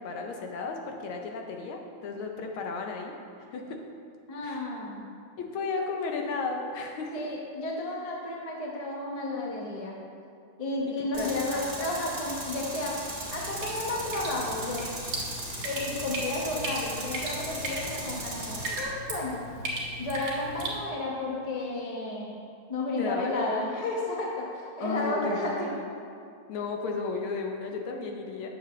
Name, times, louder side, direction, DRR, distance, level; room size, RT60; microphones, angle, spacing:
voice 1, 0.0-3.2 3.5-3.8 4.4-4.7 5.4-7.2 10.9-11.4 23.0-23.6 24.8-25.9 26.5-28.5, left 4 dB, 75° left, 2 dB, 1.5 m, -34 dB
voice 2, 4.3-5.1 7.1-10.0 10.6-13.0 13.3-14.9 15.6-19.4 20.0-22.4 22.7-25.7, left 2 dB, 30° left, -3 dB, 0.6 m, -32 dB
Tools, 11.1-18.8, right 1 dB, 25° right, 1.4 m, -38 dB
Drip, 13.3-20.8, right 1 dB, 60° right, 2.1 m, -37 dB
8.6 x 7.1 x 3.1 m, 2.4 s
omnidirectional pair, 2.4 m